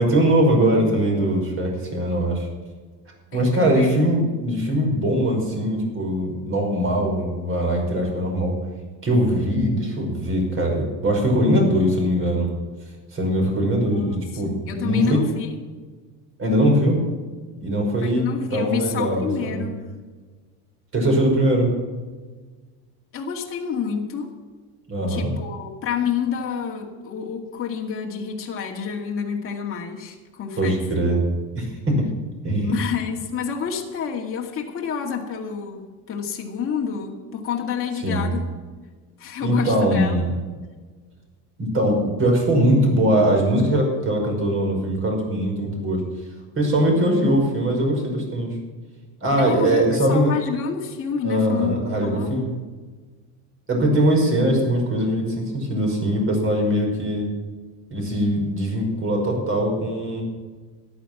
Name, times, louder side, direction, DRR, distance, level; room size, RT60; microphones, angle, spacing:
voice 1, 0.0-2.5 3.3-8.5 9.0-12.5 13.1-15.2 16.4-17.0 17.6-18.2 18.5-19.7 20.9-21.7 24.9-25.3 30.6-31.2 31.6-32.0 32.4-32.7 38.0-38.3 39.4-40.3 41.6-46.0 46.6-48.5 49.2-50.3 51.2-52.5 53.7-57.3 57.9-60.2, right 1 dB, 30° right, 1 dB, 5.3 m, -21 dB
voice 2, 3.3-4.0 13.9-15.5 18.0-19.9 23.1-24.3 25.1-30.8 32.6-38.5 39.2-40.1 49.4-52.5, left 7 dB, 30° left, 0 dB, 2.2 m, -29 dB
14.0 x 11.0 x 6.0 m, 1.4 s
supercardioid pair, 130°, 45 cm